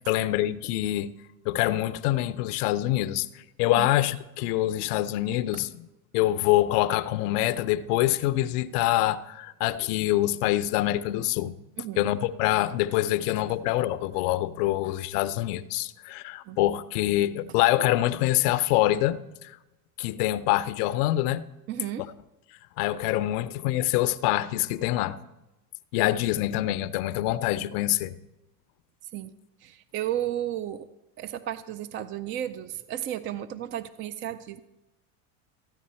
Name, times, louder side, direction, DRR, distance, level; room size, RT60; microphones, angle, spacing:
voice 1, 0.1-1.1 1.4-3.3 3.6-5.9 6.1-11.5 12.0-19.6 20.0-21.4 22.8-25.2 25.9-28.1, left 15 dB, 70° left, 0.7 m, -25 dB
voice 2, 11.8-12.1 16.5-16.6 21.7-22.1 29.1-29.3 29.6-30.9 31.2-34.6, right 11 dB, 30° right, 0.3 m, -33 dB
14.0 x 9.2 x 4.3 m
supercardioid pair, 100°, 48 cm